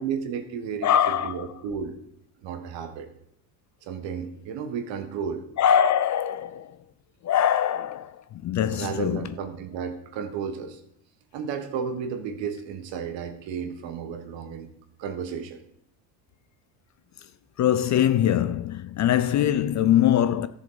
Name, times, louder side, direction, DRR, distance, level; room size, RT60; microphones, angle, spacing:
voice 1, 0.0-2.0 2.4-3.1 3.8-5.5 8.7-10.8 11.3-14.7 15.0-15.6, right 6 dB, 60° right, 1.7 m, -33 dB
voice 2, 0.8-1.4 5.6-6.8 7.2-9.3 17.2-17.3 17.6-20.5, left 10 dB, 35° left, 0.5 m, -23 dB
13.5 x 7.0 x 4.1 m
supercardioid pair, 90°, 49 cm